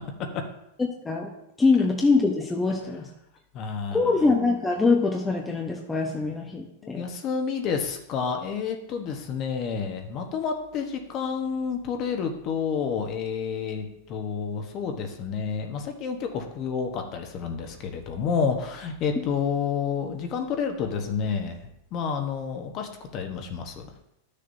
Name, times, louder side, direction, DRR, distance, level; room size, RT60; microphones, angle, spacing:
voice 1, 1.6-3.0 3.9-7.1, left 3 dB, 10° left, 0 dB, 0.8 m, -23 dB
voice 2, 3.5-4.2 6.8-23.9, left 6 dB, 35° left, 4 dB, 1.1 m, -30 dB
12.0 x 6.6 x 2.7 m, 0.79 s
supercardioid pair, 145°, 0 cm